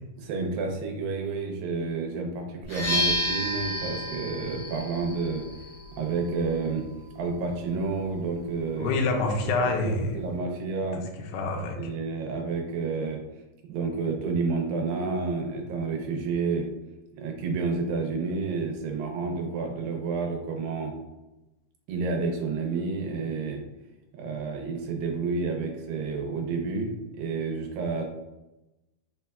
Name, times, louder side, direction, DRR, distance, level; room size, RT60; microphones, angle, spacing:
voice 1, 0.2-5.5 5.9-6.9 7.2-9.0 9.4-11.0 11.8-13.2 13.6-16.7 17.2-20.9 21.9-23.6 24.1-28.1, right 4 dB, 80° right, 2 dB, 2.4 m, -30 dB
sound 1, 2.6-10.4, left 1 dB, 50° left, 1.5 m, -34 dB
voice 2, 8.8-10.2 10.9-11.8, left 3 dB, 80° left, 2 dB, 2.1 m, -27 dB
5.6 x 3.4 x 2.3 m, 0.99 s
omnidirectional pair, 4.2 m